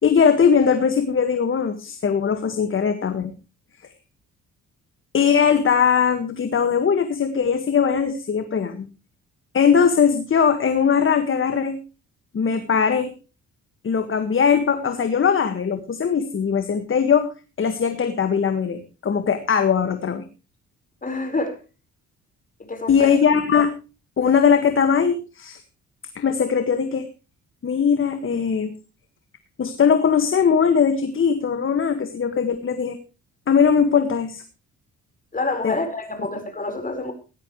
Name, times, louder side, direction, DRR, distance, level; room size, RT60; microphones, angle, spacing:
voice 1, 0.0-3.3 5.1-8.9 9.5-11.8 12.3-13.1 13.8-17.3 17.6-20.2 22.9-23.7 24.2-25.6 26.1-27.1 27.6-28.7 29.6-33.0 33.5-34.4 35.6-35.8, left 6 dB, 45° left, 1.8 m, -20 dB
voice 2, 21.0-21.6 22.6-23.2 35.3-37.1, left 2 dB, 25° left, 4.7 m, -27 dB
17.0 x 13.0 x 3.2 m
cardioid pair, 90°, 30 cm